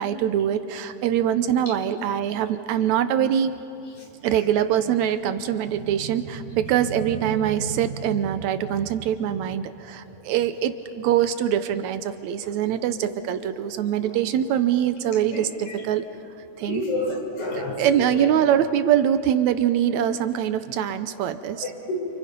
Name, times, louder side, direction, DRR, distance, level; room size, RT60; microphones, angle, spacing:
voice 1, 0.0-3.5 4.2-16.0 16.6-16.8 17.5-21.7, right 10 dB, 75° right, 11 dB, 1.9 m, -23 dB
voice 2, 16.6-17.8 18.1-18.3 21.6-22.2, left 2 dB, 65° left, 1 dB, 5.2 m, -29 dB
29.5 x 28.0 x 5.3 m, 2.8 s
omnidirectional pair, 3.7 m